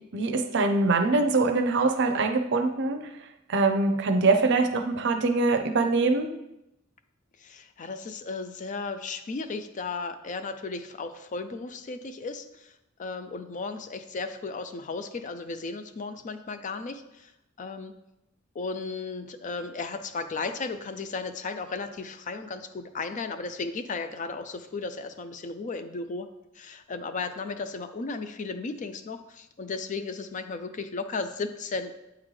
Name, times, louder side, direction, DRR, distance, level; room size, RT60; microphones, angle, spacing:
voice 1, 0.1-3.0 3.5-6.3, right 3 dB, 60° right, 7 dB, 0.6 m, -23 dB
voice 2, 7.4-12.7 13.0-17.3 17.6-17.9 18.5-26.3 26.6-31.9, left 4 dB, 40° left, 9 dB, 0.4 m, -35 dB
8.5 x 3.8 x 3.2 m, 0.88 s
head